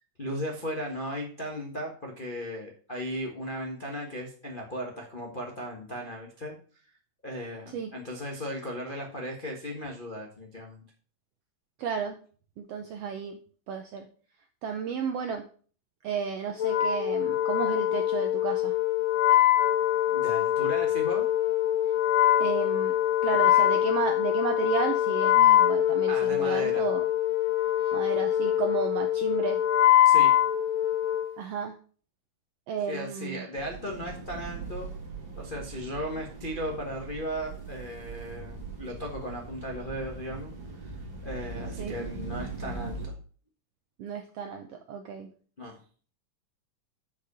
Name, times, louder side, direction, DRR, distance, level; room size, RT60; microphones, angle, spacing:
voice 1, 0.2-6.5 7.2-10.8 20.1-21.2 26.1-26.9 30.0-30.3 32.9-34.9 35.4-40.5 40.8-40.9 41.2-43.1 45.6-45.8, equal, 90° left, -1 dB, 0.4 m, -36 dB
voice 2, 11.8-12.2 12.6-13.4 13.7-14.1 14.6-15.4 16.0-18.7 22.4-22.9 23.2-27.1 27.9-29.6 31.4-31.8 32.7-33.4 41.8-42.0 44.0-45.3, right 7 dB, 80° right, 6 dB, 1.4 m, -33 dB
Wind instrument woodwind instrument, 16.6-31.3, left 12 dB, 60° left, 2.4 m, -24 dB
sound 1, 33.5-43.1, right 4 dB, 40° right, 2.9 m, -40 dB
7.8 x 5.0 x 6.7 m, 0.42 s
omnidirectional pair, 3.7 m